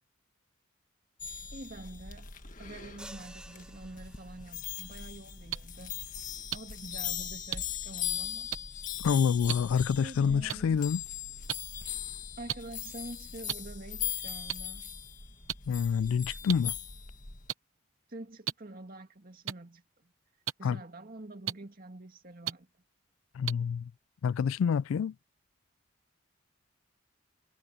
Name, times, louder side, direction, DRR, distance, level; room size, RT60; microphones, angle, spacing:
sound 1, 1.2-17.5, left 9 dB, 40° left, 2.0 m, -40 dB
voice 1, 1.5-2.3 2.6-5.9 6.2-8.5 10.0-10.8 12.4-14.9 18.1-19.8 20.6-22.7, right 2 dB, 45° right, 2.2 m, -46 dB
sound 2, 3.0-4.8, right 1 dB, 5° right, 1.4 m, -51 dB
sound 3, 5.5-5.6 6.5-6.6 7.5-7.6 8.5-8.6 9.5-9.6 10.5-10.6 11.5-11.6 12.5-12.6 13.5-13.6 14.5-14.6 15.5-15.6 16.5-16.6 17.5-17.6 18.5-18.6 19.5-19.6 20.5-20.6 21.5-21.6 22.5-22.6 23.5-23.6, right 11 dB, 90° right, 0.9 m, -32 dB
voice 2, 9.0-11.0 15.7-16.8 20.6-20.8 23.3-23.9 24.2-25.1, left 7 dB, 85° left, 0.3 m, -27 dB
head